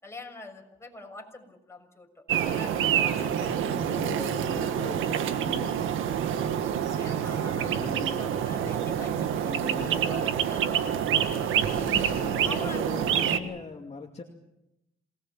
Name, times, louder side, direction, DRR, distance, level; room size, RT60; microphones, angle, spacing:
voice 1, 0.0-3.7 5.3-5.4 6.3-11.9 12.4-12.9, left 2 dB, 15° left, 2 dB, 6.6 m, -45 dB
sound 1, 2.3-13.4, right 9 dB, 85° right, 1.8 m, -27 dB
voice 2, 3.4-5.7 7.7-8.3 9.4-10.0 11.7-14.2, left 4 dB, 30° left, 2 dB, 2.5 m, -40 dB
27.5 x 19.0 x 7.4 m, 0.86 s
cardioid pair, 90°, 20 cm